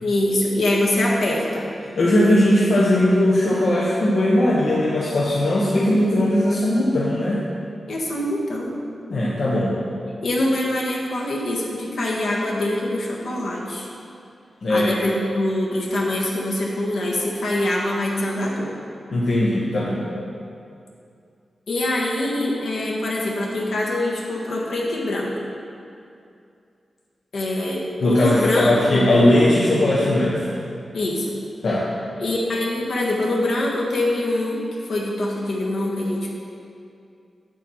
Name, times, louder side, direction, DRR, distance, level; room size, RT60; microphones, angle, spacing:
voice 1, 0.0-1.6 7.9-8.7 10.2-13.9 14.7-18.7 21.7-25.5 27.3-29.1 30.9-31.3 32.2-36.3, left 1 dB, 80° left, -3 dB, 1.5 m, -24 dB
voice 2, 1.9-7.4 9.1-9.8 14.6-15.0 19.1-20.0 28.0-30.5 31.6-31.9, left 1 dB, 65° left, -5 dB, 1.0 m, -19 dB
9.0 x 7.6 x 4.3 m, 2.5 s
wide cardioid pair, 145°, 0 cm